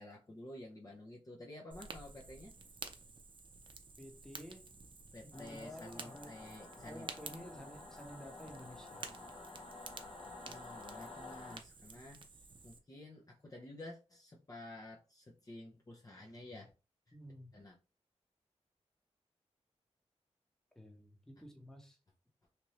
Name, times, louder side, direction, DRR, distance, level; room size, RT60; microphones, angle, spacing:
voice 1, 0.0-2.5 5.1-7.1 10.5-12.2 12.6-16.7 17.1-17.2 17.5-17.8, left 1 dB, 30° left, -2 dB, 0.6 m, -51 dB
Fire, 1.7-12.8, right 4 dB, 45° right, 0.5 m, -52 dB
voice 2, 4.0-4.6 5.2-6.3 6.8-9.1 17.1-17.5 20.7-22.0, equal, 5° left, 2 dB, 1.0 m, -52 dB
Singing / Musical instrument, 5.3-11.6, left 3 dB, 50° left, 1.0 m, -51 dB
2.9 x 2.5 x 3.1 m, 0.31 s
cardioid pair, 55°, 12 cm